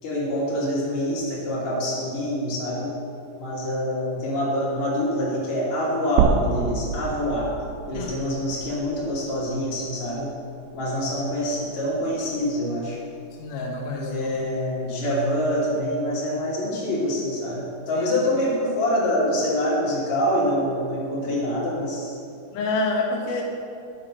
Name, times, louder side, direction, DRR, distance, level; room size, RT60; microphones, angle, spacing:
voice 1, 0.0-2.9 3.4-7.5 7.9-10.3 10.7-13.0 13.9-22.2, equal, 40° left, -6 dB, 3.5 m, -25 dB
sound 1, 6.2-10.3 10.7-10.8 12.2-12.3, right 6 dB, 85° right, 3.0 m, -28 dB
voice 2, 13.4-14.1 17.9-18.1 22.5-23.4, left 3 dB, 85° left, -1 dB, 1.8 m, -27 dB
12.0 x 7.7 x 6.2 m, 2.5 s
omnidirectional pair, 5.5 m